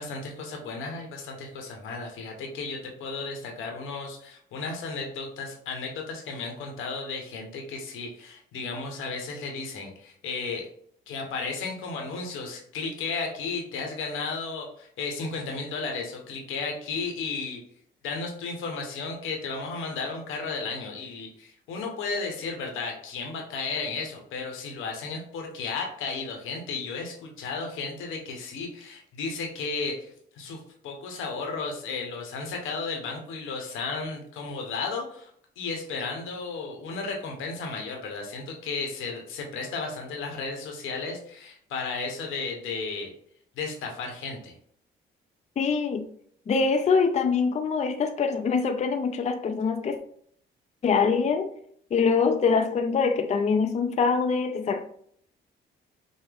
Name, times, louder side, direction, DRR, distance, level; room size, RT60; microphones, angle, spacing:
voice 1, 0.0-10.7 11.1-17.6 18.0-35.3 35.6-43.1 43.6-44.5, left 4 dB, 90° left, 1.1 m, -34 dB
voice 2, 45.6-46.1 46.5-50.0 50.8-51.5 51.9-54.8, left 5 dB, 35° left, 0.4 m, -24 dB
5.6 x 2.1 x 3.5 m
cardioid pair, 90°, 20 cm